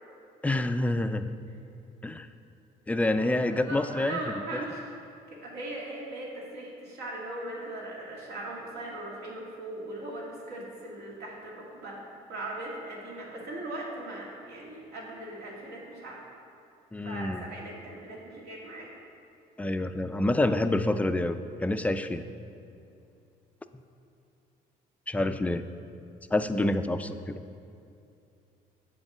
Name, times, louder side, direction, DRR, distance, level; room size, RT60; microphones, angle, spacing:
voice 1, 0.4-1.3 2.0-2.3 2.9-4.4 16.9-17.4 19.6-22.3 25.1-25.6 26.3-27.4, left 1 dB, 10° left, 10 dB, 0.3 m, -27 dB
voice 2, 3.2-4.8 5.3-12.0 12.3-16.2 17.0-18.9, right 1 dB, 80° right, -3 dB, 2.0 m, -39 dB
7.8 x 4.4 x 7.1 m, 2.6 s
cardioid pair, 110°, 17 cm